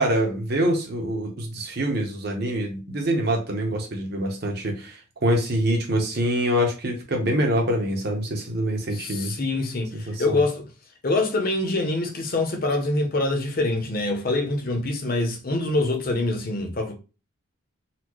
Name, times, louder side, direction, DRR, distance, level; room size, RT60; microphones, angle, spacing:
voice 1, 0.0-9.3 9.9-10.4, right 1 dB, 50° right, 0.9 m, -25 dB
voice 2, 8.9-10.6 11.0-16.9, left 2 dB, 45° left, 0.7 m, -25 dB
4.1 x 2.1 x 3.0 m
head